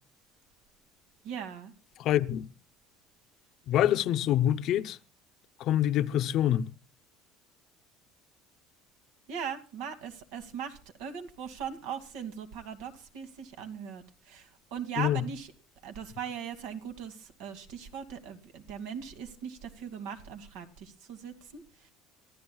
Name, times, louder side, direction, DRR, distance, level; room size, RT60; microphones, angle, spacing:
voice 1, 1.2-1.7 9.3-15.5 15.8-21.9, right 7 dB, 75° right, 2.4 m, -40 dB
voice 2, 2.0-2.5 3.7-5.0 5.6-6.7 15.0-15.2, left 11 dB, 45° left, 0.8 m, -26 dB
26.0 x 14.5 x 2.4 m
cardioid pair, 165°, 0 cm